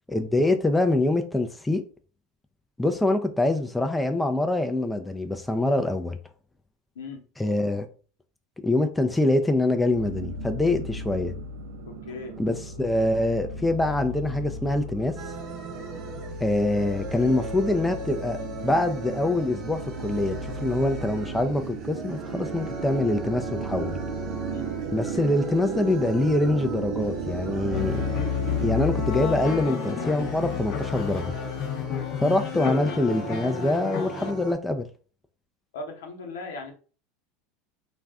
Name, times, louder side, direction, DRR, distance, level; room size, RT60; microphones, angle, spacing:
voice 1, 0.1-1.8 2.8-6.2 7.4-7.9 8.6-11.3 12.4-15.2 16.4-20.4 20.6-24.0 24.9-28.0 28.6-31.3 32.2-34.9, left 2 dB, 10° left, 0.4 m, -24 dB
sound 1, 9.9-29.3, right 3 dB, 80° right, 0.6 m, -35 dB
voice 2, 11.9-12.4 24.5-24.7 35.7-36.7, left 3 dB, 85° left, 0.8 m, -38 dB
sound 2, 15.2-34.5, right 4 dB, 45° right, 0.8 m, -38 dB
sound 3, 27.5-34.3, left 11 dB, 50° left, 0.6 m, -30 dB
2.5 x 2.2 x 3.4 m
supercardioid pair, 105°, 0 cm